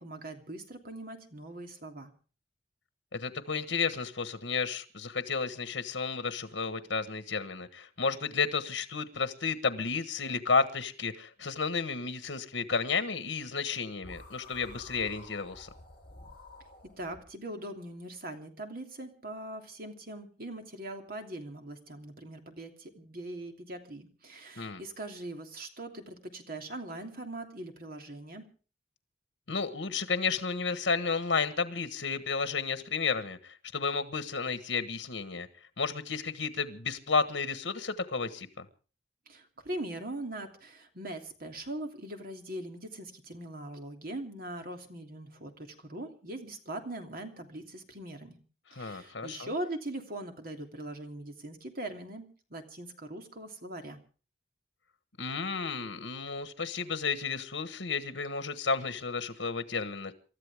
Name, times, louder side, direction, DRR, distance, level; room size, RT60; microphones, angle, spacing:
voice 1, 0.0-2.1 17.0-28.5 39.3-48.4 48.7-54.0, right 1 dB, 55° right, 3.0 m, -41 dB
voice 2, 3.1-15.7 24.6-24.8 29.5-35.5 35.8-38.6 48.7-49.5 55.2-60.1, left 5 dB, 80° left, 1.4 m, -32 dB
sound 1, 14.0-17.2, left 2 dB, 25° left, 7.4 m, -50 dB
28.0 x 13.5 x 3.6 m
head